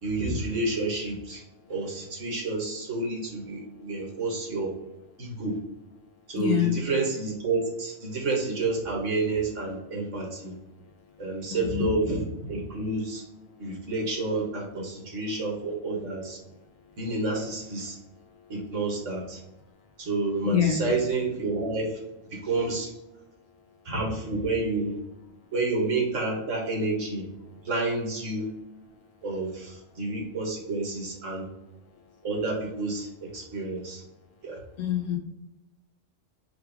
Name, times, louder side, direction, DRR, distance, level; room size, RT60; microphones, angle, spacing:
voice 1, 0.0-1.4 1.7-4.7 5.2-5.6 6.3-10.5 11.2-13.2 13.6-16.4 17.0-18.0 18.5-19.4 20.0-22.0 22.3-22.9 23.8-24.9 25.5-27.2 27.6-28.5 29.2-31.5 32.2-33.1 33.3-34.0 34.4-34.6, right 3 dB, 70° right, -1 dB, 1.6 m, -29 dB
voice 2, 6.3-6.8 11.5-11.9 20.4-20.8 34.8-35.2, left 9 dB, 85° left, 2 dB, 1.2 m, -25 dB
4.8 x 2.4 x 3.4 m, 0.96 s
omnidirectional pair, 1.3 m